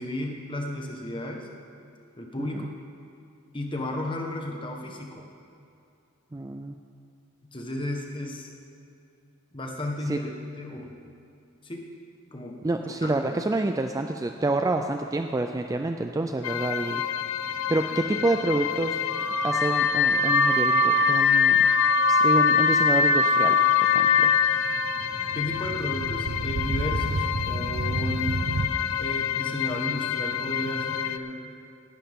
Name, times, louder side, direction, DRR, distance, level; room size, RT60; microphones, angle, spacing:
voice 1, 0.0-1.5 2.2-2.7 3.5-5.3 7.5-8.5 9.5-11.0 11.6-11.9 12.3-12.6 13.0-13.4 25.3-28.4 29.0-31.5, left 1 dB, 25° left, 1 dB, 1.2 m, -33 dB
voice 2, 6.3-6.7 10.1-10.2 12.6-17.0 17.5-19.0 19.4-21.6 22.1-24.3, right 2 dB, 15° right, 5 dB, 0.3 m, -28 dB
sound 1, 16.4-31.2, left 9 dB, 85° left, 0.5 m, -30 dB
Car / Alarm, 19.1-24.6, left 4 dB, 55° left, 1.1 m, -21 dB
sound 2, 25.0-28.7, right 2 dB, 90° right, 0.8 m, -30 dB
18.5 x 11.5 x 3.6 m, 2.5 s
head